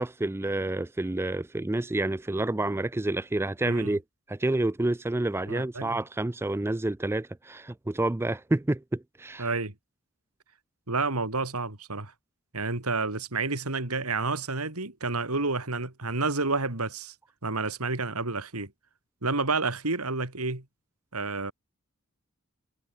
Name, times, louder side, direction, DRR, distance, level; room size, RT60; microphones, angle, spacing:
voice 1, 0.0-4.0 4.3-9.5, right 2 dB, 10° right, 0.4 m, -29 dB
voice 2, 3.6-4.0 5.5-6.0 9.4-9.7 10.9-12.1 12.5-17.1 17.4-18.7 19.2-20.6 21.1-21.5, right 3 dB, 80° right, 3.2 m, -30 dB
head